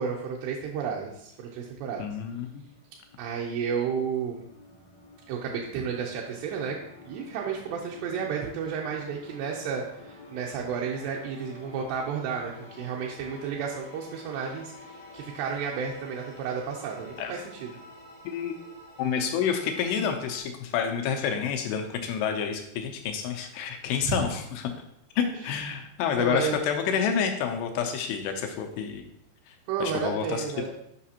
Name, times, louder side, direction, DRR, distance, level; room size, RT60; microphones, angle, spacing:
voice 1, 0.0-2.0 3.2-4.4 5.3-6.8 7.0-17.7 24.0-24.3 25.3-25.6 26.1-26.7 29.7-30.7, right 6 dB, 80° right, -2 dB, 2.6 m, -32 dB
voice 2, 2.0-2.6 17.2-17.3 18.3-18.6 19.0-24.7 25.2-29.0 29.5-29.6 29.8-30.7, left 7 dB, 85° left, 5 dB, 2.4 m, -29 dB
sound 1, 2.4-20.4, left 2 dB, 55° left, 0.5 m, -49 dB
8.3 x 5.7 x 2.8 m, 0.75 s
omnidirectional pair, 5.2 m